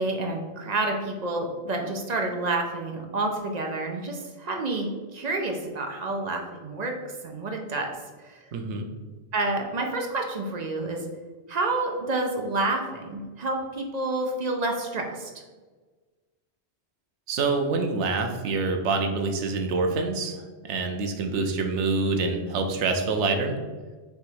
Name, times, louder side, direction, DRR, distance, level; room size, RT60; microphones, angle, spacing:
voice 1, 0.0-4.9 5.1-6.9 7.2-7.9 8.2-8.5 9.3-11.1 11.5-15.3, right 2 dB, 50° right, 2 dB, 0.5 m, -29 dB
voice 2, 8.5-8.9 17.3-23.6, right 3 dB, 90° right, 4 dB, 0.9 m, -26 dB
3.4 x 2.9 x 4.5 m, 1.3 s
omnidirectional pair, 1.2 m